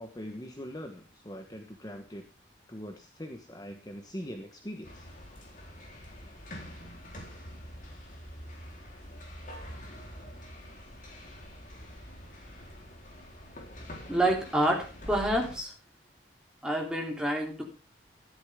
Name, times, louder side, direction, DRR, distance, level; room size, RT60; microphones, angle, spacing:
voice 1, 0.0-2.2 2.7-5.1, equal, 20° left, 4 dB, 1.2 m, -42 dB
sound 1, 4.8-15.6, equal, 45° left, 3.8 m, -45 dB
voice 2, 14.1-15.7 16.6-17.6, right 1 dB, 5° right, 0 dB, 3.3 m, -28 dB
13.5 x 11.5 x 3.6 m, 0.32 s
head